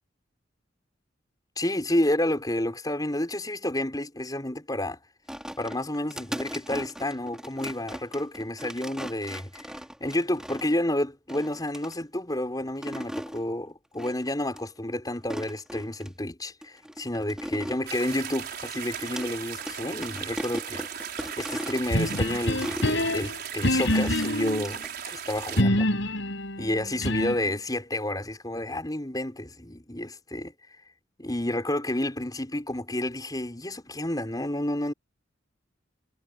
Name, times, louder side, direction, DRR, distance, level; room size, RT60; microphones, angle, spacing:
voice 1, 1.6-5.0 5.6-9.7 10.0-20.9 21.4-25.9 26.6-30.5 31.2-34.9, left 1 dB, 20° left, 5.8 m, -30 dB
sound 1, 5.3-10.9 11.3-11.9 12.6-13.4 14.0-14.3 14.5-14.6 15.2-16.1 16.6-19.3 19.6-19.8 20.0-23.0 23.9-25.0, equal, 5° right, 4.4 m, -38 dB
sound 2, 17.9-25.6, right 8 dB, 55° right, 5.4 m, -37 dB
sound 3, 21.9-24.7 25.6-27.5, left 1 dB, 70° left, 5.5 m, -26 dB
head